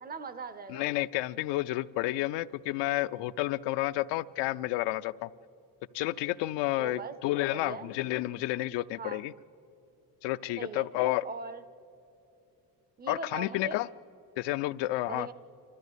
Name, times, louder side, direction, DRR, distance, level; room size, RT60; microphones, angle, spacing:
voice 1, 0.0-0.8 6.8-7.2 7.5-7.9 9.0-9.2 10.6-10.8 11.2-11.6 13.0-13.8 15.1-15.3, right 4 dB, 25° right, 14 dB, 0.4 m, -40 dB
voice 2, 0.7-5.3 5.9-9.3 10.2-11.2 13.1-13.9 14.4-15.3, left 16 dB, 85° left, 15 dB, 0.6 m, -30 dB
28.0 x 13.0 x 8.1 m, 2.8 s
cardioid pair, 175°, 41 cm